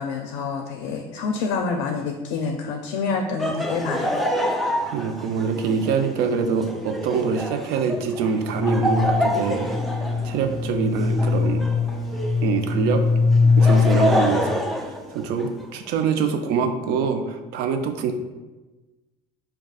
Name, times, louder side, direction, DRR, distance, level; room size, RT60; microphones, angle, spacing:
voice 1, 0.0-4.1, left 4 dB, 85° left, 3 dB, 0.4 m, -27 dB
Laughter, 3.4-12.5 13.3-15.7, equal, ahead, 0.3 m, -27 dB
voice 2, 4.9-9.7 10.2-11.6 12.4-13.0 13.6-14.6 15.1-18.1, right 6 dB, 70° right, 7 dB, 0.4 m, -24 dB
sound 1, 8.5-14.4, left 4 dB, 85° right, 1.1 m, -22 dB
4.8 x 2.3 x 2.3 m, 1.1 s
cardioid pair, 130°, 17 cm